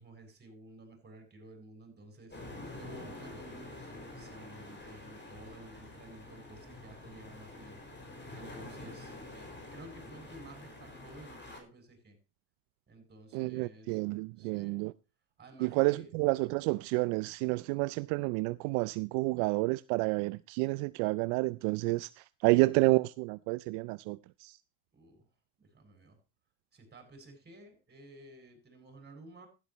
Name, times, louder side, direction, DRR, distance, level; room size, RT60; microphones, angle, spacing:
voice 1, 0.0-2.4 2.8-7.8 8.3-12.2 12.9-14.8 15.4-16.1 24.9-25.3 25.6-26.2 26.7-29.5, right 2 dB, 20° right, 7.9 m, -53 dB
sound 1, 2.3-11.6, left 2 dB, 20° left, 5.5 m, -47 dB
voice 2, 13.3-14.9 15.6-24.6, right 24 dB, 70° right, 0.7 m, -30 dB
15.0 x 12.5 x 3.0 m
supercardioid pair, 125°, 50 cm